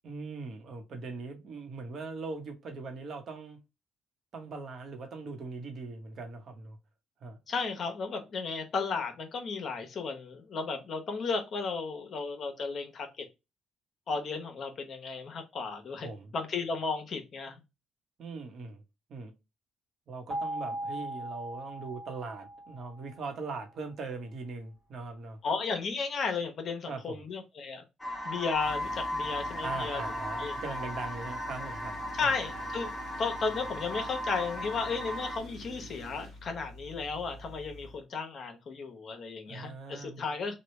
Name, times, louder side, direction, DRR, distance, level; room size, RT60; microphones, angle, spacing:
voice 1, 0.0-3.6 4.3-6.8 7.2-7.4 16.0-16.3 18.2-18.8 19.1-19.3 20.1-25.4 26.9-27.3 29.6-32.3 39.5-40.2, right 4 dB, 60° right, 1.0 m, -40 dB
voice 2, 7.5-13.2 14.1-16.1 16.3-17.6 25.4-27.8 28.2-30.0 30.4-30.5 32.1-32.9 33.2-40.5, left 4 dB, 50° left, 0.9 m, -34 dB
sound 1, 20.3-23.3, right 1 dB, 25° right, 1.4 m, -38 dB
sound 2, 28.0-35.4, left 1 dB, 10° left, 1.2 m, -36 dB
Tools, 28.5-38.0, right 1 dB, 80° right, 0.9 m, -47 dB
3.1 x 2.3 x 3.1 m
cardioid pair, 90°, 0 cm